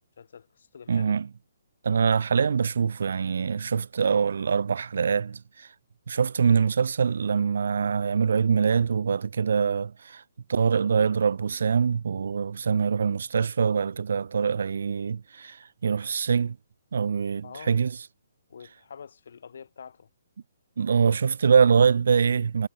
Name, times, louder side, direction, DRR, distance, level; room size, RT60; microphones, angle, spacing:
voice 1, 0.2-1.2 17.4-17.8 18.5-20.1, left 6 dB, 65° left, 6.5 m, -46 dB
voice 2, 0.9-1.3 1.8-5.7 6.1-10.2 10.5-16.6 16.9-17.9 20.8-22.7, right 6 dB, 65° right, 0.5 m, -24 dB
hypercardioid pair, 140°, 0 cm